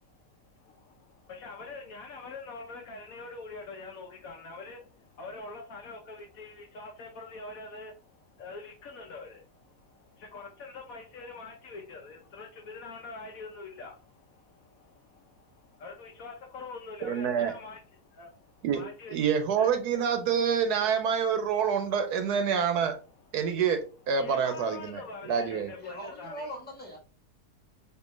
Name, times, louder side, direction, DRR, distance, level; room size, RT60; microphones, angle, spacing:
voice 1, 0.0-19.2 19.6-19.7 24.2-26.5, left 3 dB, 65° left, 0.9 m, -45 dB
voice 2, 17.0-17.5 18.6-18.8 19.1-22.9 23.3-25.7, right 7 dB, 75° right, 1.1 m, -27 dB
voice 3, 25.8-27.0, equal, 5° left, 1.2 m, -41 dB
4.4 x 2.7 x 3.1 m
omnidirectional pair, 1.8 m